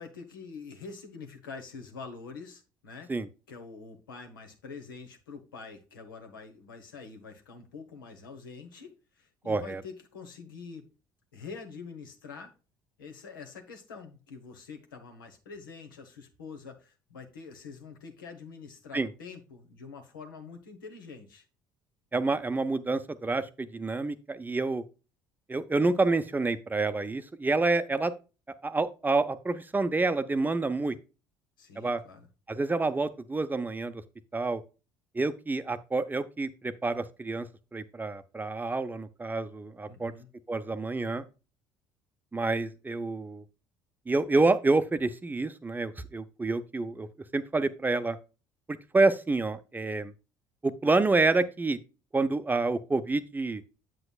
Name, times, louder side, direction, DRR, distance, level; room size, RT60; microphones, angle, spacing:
voice 1, 0.0-3.1 3.5-10.9 11.3-12.5 13.0-21.5 31.6-32.3 39.9-40.3, left 5 dB, 80° left, 5 dB, 1.1 m, -45 dB
voice 2, 9.5-9.8 18.9-19.1 22.1-24.8 25.5-28.1 28.6-31.0 31.8-32.0 32.5-34.0 34.3-34.6 35.1-37.5 37.7-40.1 40.5-41.2 42.3-43.4 44.1-47.1 47.3-48.2 48.7-50.1 50.6-51.8 52.1-53.6, right 3 dB, 15° right, 11 dB, 0.6 m, -28 dB
7.9 x 7.7 x 2.3 m, 0.31 s
figure-of-eight pair, 55°, 11 cm